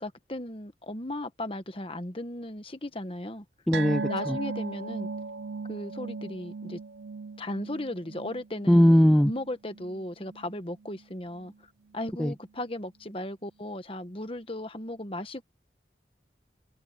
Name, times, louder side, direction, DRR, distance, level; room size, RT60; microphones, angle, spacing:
voice 1, 0.0-3.4 4.0-5.1 5.7-6.8 7.4-15.4, left 1 dB, 30° left, 1.4 m, -36 dB
voice 2, 3.7-4.0 4.3-4.4 8.7-9.3 12.2-12.3, equal, 5° left, 0.4 m, -19 dB
sound 1, 3.7-10.5 10.8-11.0 11.4-11.5, right 4 dB, 85° right, 0.6 m, -37 dB
head